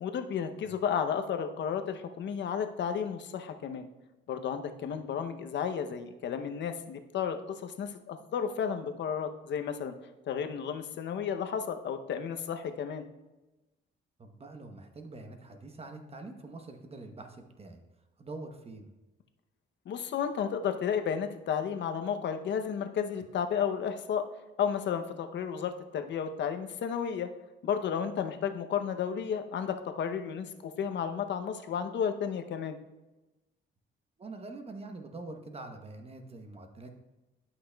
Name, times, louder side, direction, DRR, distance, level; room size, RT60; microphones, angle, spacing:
voice 1, 0.0-3.9 4.3-9.9 10.2-13.1 19.9-24.2 24.6-27.3 27.6-32.8, left 7 dB, 65° left, 7 dB, 0.7 m, -32 dB
voice 2, 14.2-17.8 18.2-18.9 34.2-36.9, right 2 dB, 30° right, 5 dB, 1.0 m, -45 dB
11.5 x 5.8 x 2.3 m, 1.0 s
cardioid pair, 90°, 20 cm